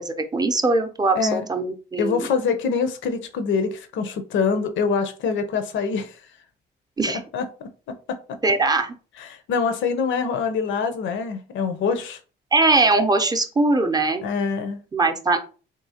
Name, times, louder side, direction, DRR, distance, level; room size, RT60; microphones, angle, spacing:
voice 1, 0.0-2.3 7.0-7.2 8.4-8.9 12.5-14.3 14.9-15.4, right 3 dB, 20° right, 0.6 m, -21 dB
voice 2, 1.1-1.5 2.0-6.2 7.3-7.5 7.9-8.4 9.2-12.2 14.2-14.8, left 5 dB, 75° left, 0.6 m, -25 dB
3.7 x 2.7 x 2.8 m
cardioid pair, 90°, 20 cm